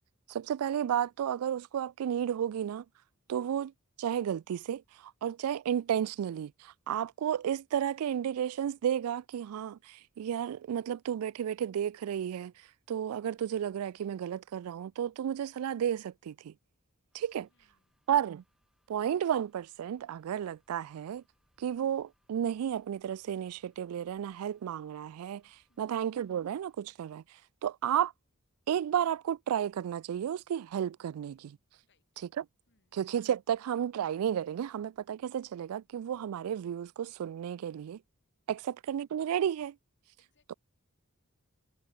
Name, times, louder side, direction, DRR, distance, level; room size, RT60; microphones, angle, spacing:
voice 1, 0.3-2.8 3.3-3.7 4.0-12.5 12.9-16.5 17.1-17.5 18.1-18.4 18.9-21.2 21.6-27.2 27.6-28.1 28.7-31.6 32.4-32.5 32.9-38.0 38.5-39.8 40.5-40.6, right 9 dB, 85° right, 0.3 m, -32 dB
sound 1, 17.1-26.8, equal, ahead, 3.4 m, -77 dB
voice 2, 17.5-18.0 25.7-26.0 31.8-32.2 32.7-33.0 38.5-38.8 40.2-40.6, left 3 dB, 55° left, 5.0 m, -76 dB
head